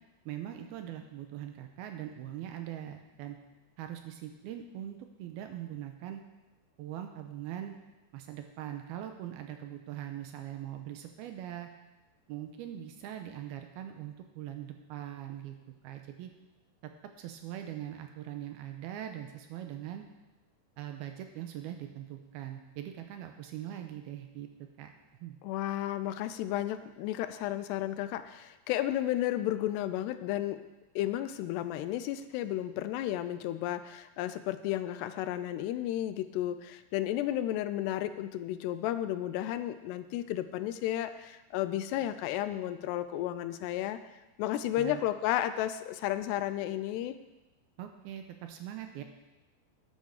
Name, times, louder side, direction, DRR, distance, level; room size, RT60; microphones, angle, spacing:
voice 1, 0.3-3.4 3.8-6.2 6.8-7.8 8.1-11.7 12.3-15.6 15.8-16.3 16.8-16.9 17.2-20.0 20.8-24.5 24.8-24.9 25.2-25.4 44.8-45.0 47.8-49.0, right 11 dB, 80° right, 6 dB, 2.4 m, -41 dB
voice 2, 25.4-30.6 31.0-44.0 44.4-47.2, left 13 dB, 80° left, 11 dB, 2.6 m, -33 dB
10.5 x 10.5 x 6.4 m, 1.1 s
omnidirectional pair, 5.1 m